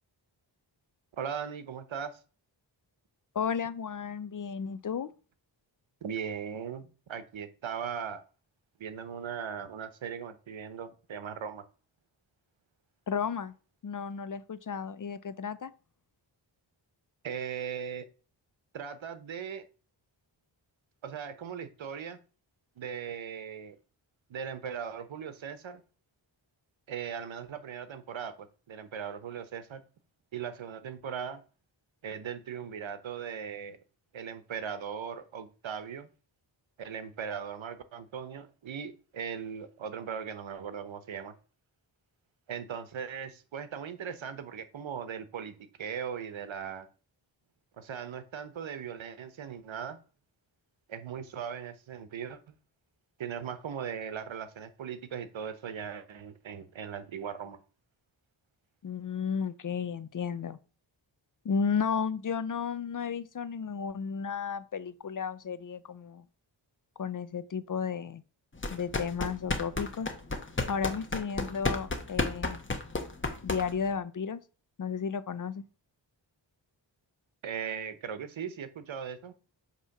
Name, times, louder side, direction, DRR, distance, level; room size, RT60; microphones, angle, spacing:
voice 1, 1.2-2.2 6.0-8.2 8.8-11.6 17.2-18.1 18.7-19.6 21.0-22.2 22.8-23.8 24.3-25.8 26.9-29.8 30.3-31.4 32.0-33.8 34.1-36.1 36.8-41.3 42.5-46.9 47.8-50.0 50.9-52.5 53.2-57.6 77.4-79.3, right 7 dB, 85° right, 0.9 m, -39 dB
voice 2, 3.3-5.1 13.1-13.5 13.8-15.7 58.8-60.6 61.4-66.3 67.0-68.2 68.7-70.1 70.7-72.8 73.4-74.4 74.8-75.7, left 6 dB, 45° left, 0.5 m, -33 dB
sound 1, 68.6-73.9, left 3 dB, 25° left, 1.0 m, -33 dB
8.1 x 3.1 x 5.8 m
wide cardioid pair, 100°, 46 cm